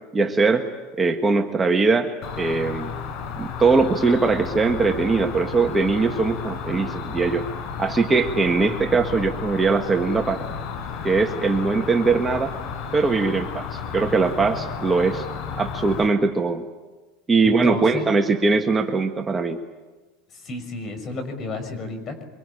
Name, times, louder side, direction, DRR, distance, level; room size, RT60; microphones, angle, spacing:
voice 1, 0.1-0.7 1.0-2.9 3.4-7.5 7.8-10.4 11.0-12.5 12.9-15.3 15.6-16.7 17.3-19.6, right 4 dB, 15° right, 5 dB, 1.5 m, -21 dB
Cricket, 2.2-16.1, left 6 dB, 55° left, 4.3 m, -33 dB
voice 2, 17.4-18.1 20.3-22.2, left 2 dB, 35° left, 8 dB, 6.2 m, -31 dB
24.5 x 24.5 x 9.9 m, 1.2 s
supercardioid pair, 125°, 0 cm